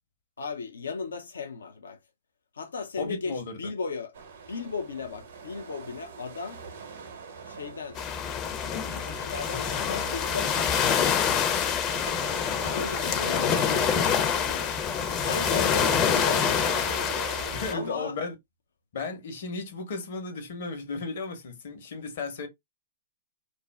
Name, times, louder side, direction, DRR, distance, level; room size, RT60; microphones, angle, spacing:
voice 1, 0.4-2.0 2.5-4.1 4.5-6.6 7.5-8.0 8.7-11.6 12.6-14.8 15.2-16.6 17.7-18.2, left 5 dB, 80° left, 0.5 m, -36 dB
voice 2, 3.0-3.6 15.3-15.6 17.5-18.3 18.9-22.5, left 4 dB, 65° left, 0.9 m, -35 dB
sound 1, 4.1-17.9, right 5 dB, 70° right, 0.8 m, -40 dB
sound 2, 8.0-17.7, left 8 dB, 35° left, 0.5 m, -26 dB
2.5 x 2.0 x 3.3 m
hypercardioid pair, 120°, 0 cm